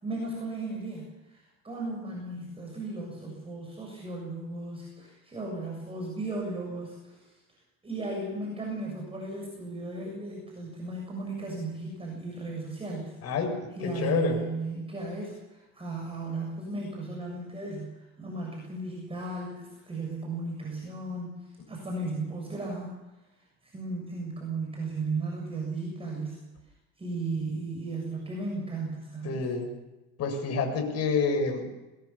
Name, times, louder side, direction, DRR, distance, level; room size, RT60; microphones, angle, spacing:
voice 1, 0.0-7.4 7.8-13.2 13.7-23.0 23.6-26.4 27.0-29.4, right 2 dB, 20° right, -1 dB, 7.1 m, -35 dB
voice 2, 13.2-14.4 29.2-29.7 30.2-31.9, left 4 dB, 55° left, 3 dB, 7.3 m, -28 dB
22.0 x 21.5 x 7.2 m, 1.1 s
cardioid pair, 115°, 31 cm